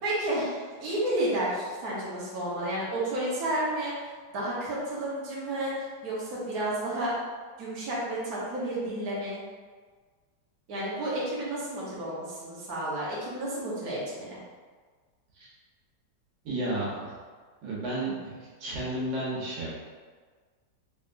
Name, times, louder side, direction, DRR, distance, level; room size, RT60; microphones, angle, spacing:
voice 1, 0.0-7.1 7.6-9.4 10.7-14.4, right 1 dB, 60° right, -7 dB, 1.3 m, -31 dB
voice 2, 16.5-17.1 17.6-19.7, right 1 dB, 85° right, -7 dB, 1.8 m, -32 dB
3.8 x 3.3 x 2.5 m, 1.5 s
omnidirectional pair, 2.0 m